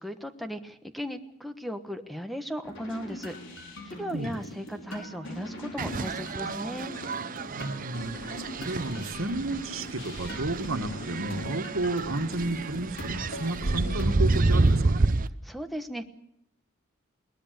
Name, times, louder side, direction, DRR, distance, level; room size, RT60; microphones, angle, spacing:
voice 1, 0.0-6.9 15.4-16.1, equal, ahead, 8 dB, 1.2 m, -37 dB
sound 1, 2.6-14.9, left 1 dB, 65° left, 5.6 m, -41 dB
sound 2, 5.8-15.3, right 3 dB, 40° right, 0.7 m, -29 dB
voice 2, 7.5-8.2 8.6-15.1, right 2 dB, 80° right, 8 dB, 1.9 m, -32 dB
21.0 x 19.5 x 6.8 m, 0.78 s
head